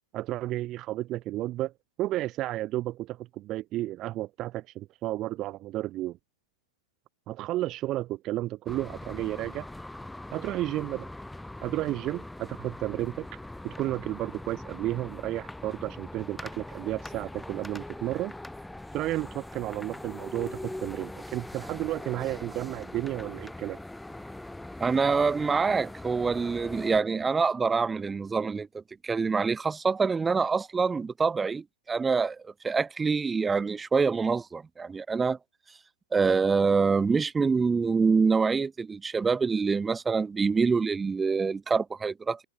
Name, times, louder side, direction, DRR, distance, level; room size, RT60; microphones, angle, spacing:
voice 1, 0.1-1.7 2.0-6.2 7.3-9.7 10.3-11.1 11.6-13.3 13.6-18.3 18.9-23.8, right 15 dB, 30° right, 1.6 m, -32 dB
sound 1, 8.7-27.0, left 1 dB, 5° left, 7.2 m, -42 dB
voice 2, 24.8-35.4 36.1-42.4, right 5 dB, 10° right, 2.0 m, -26 dB
figure-of-eight pair, 110°, 0 cm